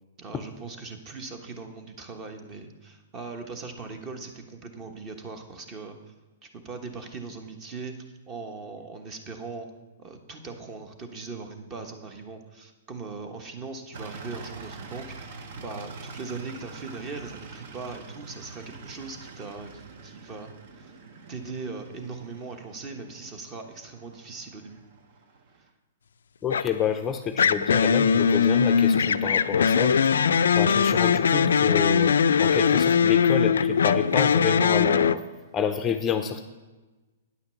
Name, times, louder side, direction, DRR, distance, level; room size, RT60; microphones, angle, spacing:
voice 1, 0.2-6.0 6.4-9.7 10.0-20.5 20.8-20.9 21.3-24.8, right 4 dB, 25° right, 6 dB, 1.2 m, -40 dB
sound 1, 13.9-25.7, right 4 dB, 55° right, 1.0 m, -45 dB
voice 2, 26.4-30.0 30.6-35.2 35.5-36.4, left 7 dB, 20° left, 7 dB, 0.5 m, -29 dB
sound 2, 26.5-26.8 27.4-35.2, left 6 dB, 90° left, 0.3 m, -21 dB
9.5 x 5.7 x 6.9 m, 1.2 s
hypercardioid pair, 145°, 0 cm